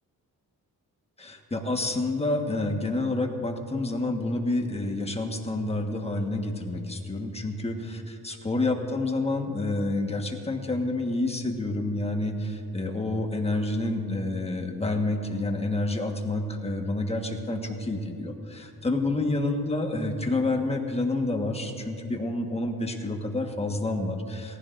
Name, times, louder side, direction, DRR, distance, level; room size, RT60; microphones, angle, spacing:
voice 1, 1.2-24.6, left 2 dB, 15° left, 3 dB, 1.4 m, -28 dB
18.5 x 15.0 x 2.6 m, 2.6 s
cardioid pair, 85°, 35 cm